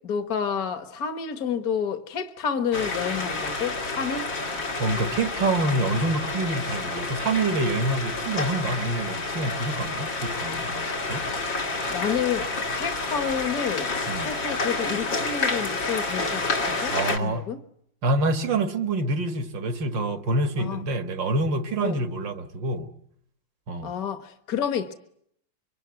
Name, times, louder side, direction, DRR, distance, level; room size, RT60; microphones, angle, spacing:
voice 1, 0.0-4.3 11.9-12.5 12.7-17.6 20.6-20.8 21.8-22.0 23.8-24.9, left 7 dB, 55° left, 1.8 m, -29 dB
sound 1, 2.7-17.2, left 3 dB, 80° left, 3.1 m, -29 dB
voice 2, 4.8-11.3 14.1-14.3 16.9-17.4 18.0-22.9 23.7-23.9, right 2 dB, 75° right, 2.3 m, -26 dB
26.5 x 24.0 x 9.5 m
omnidirectional pair, 2.0 m